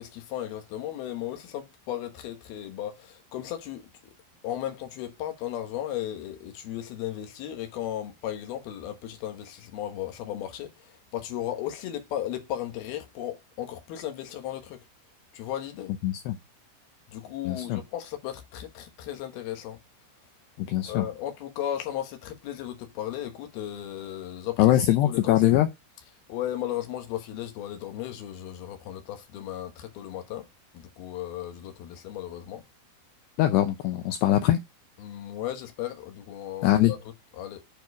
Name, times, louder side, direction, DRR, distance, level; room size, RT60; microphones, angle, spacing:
voice 1, 0.0-3.9 4.4-14.8 15.3-15.9 17.1-19.8 20.9-25.5 26.3-30.5 30.7-32.6 35.0-37.0 37.3-37.6, left 12 dB, 70° left, 2.5 m, -35 dB
voice 2, 16.0-16.4 17.4-17.8 20.6-21.1 24.6-25.7 33.4-34.6 36.6-36.9, left 13 dB, 90° left, 2.3 m, -22 dB
8.9 x 4.5 x 4.7 m
omnidirectional pair, 5.7 m